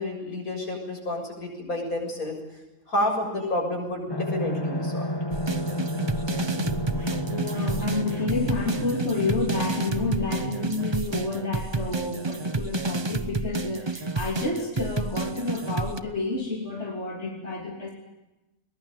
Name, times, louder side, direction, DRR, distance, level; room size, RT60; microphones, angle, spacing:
voice 1, 0.0-2.3 2.9-5.1, left 1 dB, 75° left, 2 dB, 7.6 m, -29 dB
sound 1, 4.1-10.4, left 1 dB, 20° left, 1.1 m, -32 dB
sound 2, 5.3-16.0, right 3 dB, 25° right, 0.7 m, -30 dB
sound 3, 6.6-11.0, right 6 dB, 45° right, 6.3 m, -38 dB
voice 2, 7.3-17.9, left 3 dB, 50° left, 0 dB, 3.4 m, -29 dB
22.0 x 21.0 x 9.0 m, 0.99 s
omnidirectional pair, 1.5 m